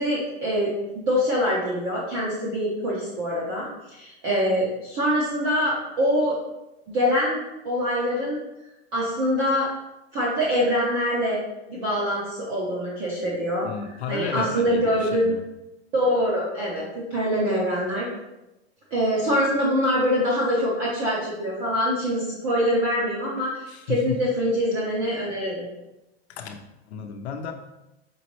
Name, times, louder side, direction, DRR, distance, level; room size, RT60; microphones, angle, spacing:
voice 1, 0.0-6.3 6.9-8.4 8.9-9.7 10.1-11.4 11.7-13.7 14.1-15.4 15.9-18.1 18.9-25.7, equal, 20° right, -7 dB, 0.5 m, -24 dB
voice 2, 13.6-15.4 23.7-24.2 26.3-27.5, left 6 dB, 85° left, 5 dB, 0.7 m, -33 dB
5.2 x 3.0 x 3.0 m, 0.95 s
supercardioid pair, 175°, 31 cm